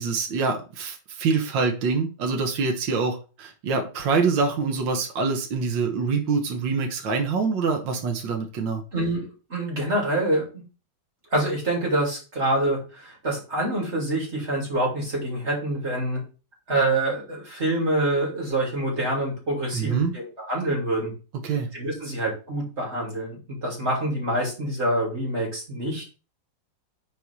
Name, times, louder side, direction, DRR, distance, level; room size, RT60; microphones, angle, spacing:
voice 1, 0.0-8.8 19.7-20.1 21.4-21.7, right 4 dB, 70° right, 2 dB, 1.9 m, -25 dB
voice 2, 8.9-10.4 11.3-16.2 16.7-21.1 21.7-26.0, right 1 dB, 35° right, -3 dB, 3.4 m, -26 dB
7.0 x 4.5 x 4.7 m, 0.34 s
omnidirectional pair, 2.1 m